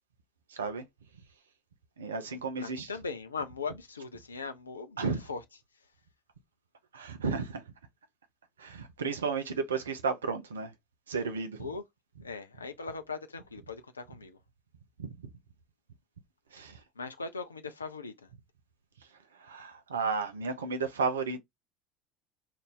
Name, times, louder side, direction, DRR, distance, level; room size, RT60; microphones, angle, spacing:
voice 1, 0.5-0.9 2.0-3.0 5.0-5.3 6.9-7.6 8.6-10.7 11.1-11.8 12.2-12.3 15.0-15.2 16.5-16.8 19.4-21.4, right 4 dB, 75° right, 0.6 m, -33 dB
voice 2, 2.6-5.4 11.6-11.8 12.2-14.4 17.0-18.3, left 4 dB, 80° left, 0.4 m, -39 dB
2.8 x 2.6 x 3.6 m
figure-of-eight pair, 65°, 0 cm